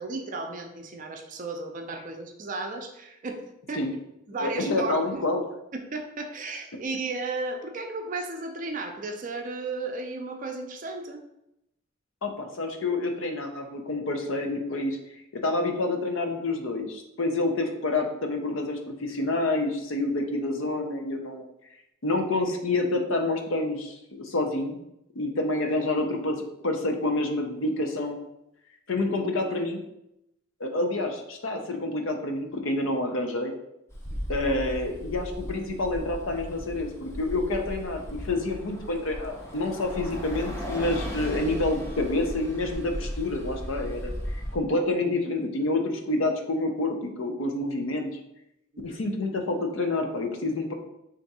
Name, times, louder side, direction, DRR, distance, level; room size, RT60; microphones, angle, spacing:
voice 1, 0.0-3.4 3.7-3.9 4.3-5.2 5.7-11.2 48.7-49.0, right 3 dB, 40° right, 4 dB, 0.5 m, -34 dB
voice 2, 4.4-5.4 12.2-15.0 15.4-21.4 22.0-24.8 25.2-26.4 26.6-28.1 28.9-29.8 30.6-33.5 34.3-44.1 44.5-48.1 48.8-50.7, left 2 dB, 70° left, 4 dB, 0.6 m, -28 dB
Bus, 33.9-44.6, equal, 15° left, 0.6 m, -36 dB
3.5 x 2.6 x 4.1 m, 0.83 s
head